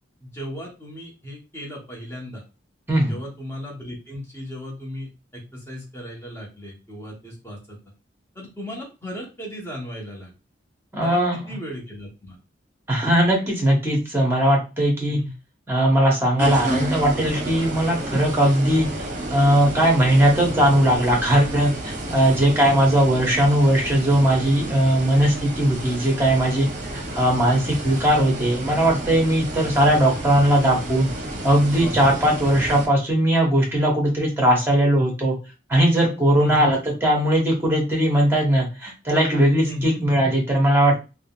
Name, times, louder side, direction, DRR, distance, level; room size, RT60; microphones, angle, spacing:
voice 1, 0.2-2.4 3.1-7.8 8.3-10.3 11.0-12.4 15.0-15.3 20.2-20.5 28.2-28.4 31.8-32.2 36.4-36.7 39.6-40.0, equal, 15° left, -3 dB, 1.0 m, -36 dB
voice 2, 10.9-11.4 12.9-15.2 15.7-26.7 26.9-31.1 31.4-35.4 35.7-40.9, right 1 dB, 10° right, -1 dB, 1.0 m, -19 dB
sound 1, 16.4-32.9, right 1 dB, 45° right, 0.8 m, -31 dB
3.6 x 2.2 x 2.3 m, 0.30 s
head